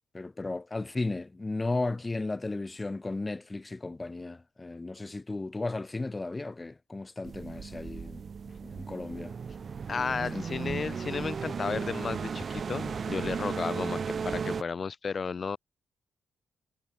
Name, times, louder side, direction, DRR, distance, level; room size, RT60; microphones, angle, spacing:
voice 1, 0.1-8.2 8.6-9.4 10.3-10.4, left 2 dB, 20° left, 1.7 m, -35 dB
sound 1, 7.2-14.6, right 6 dB, 45° right, 1.1 m, -35 dB
voice 2, 9.9-15.6, left 5 dB, 40° left, 1.9 m, -33 dB
cardioid pair, 95°, 0 cm